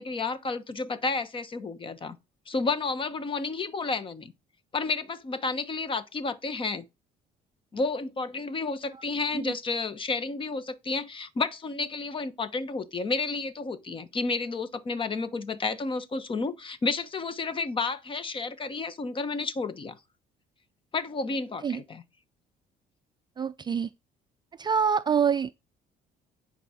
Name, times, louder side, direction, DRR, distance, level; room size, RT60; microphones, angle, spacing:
voice 1, 0.0-2.2 2.5-4.3 4.7-6.9 7.7-19.9 20.9-22.0, left 3 dB, 30° left, 1.1 m, -31 dB
voice 2, 23.4-23.9 24.6-25.5, right 7 dB, 25° right, 0.4 m, -26 dB
9.9 x 4.1 x 6.3 m
cardioid pair, 110°, 17 cm